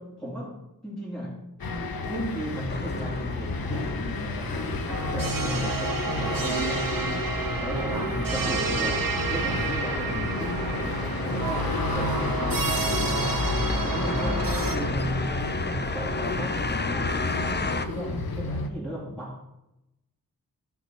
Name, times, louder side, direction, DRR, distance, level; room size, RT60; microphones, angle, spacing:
voice 1, 0.0-7.2 7.6-19.4, equal, ahead, -6 dB, 2.8 m, -35 dB
sound 1, 1.6-18.7, left 3 dB, 75° left, 1.0 m, -31 dB
sound 2, 2.7-17.9, left 3 dB, 30° left, 0.6 m, -34 dB
sound 3, 4.9-14.8, right 4 dB, 70° right, 1.2 m, -30 dB
13.0 x 5.7 x 4.6 m, 0.90 s
wide cardioid pair, 80°, 36 cm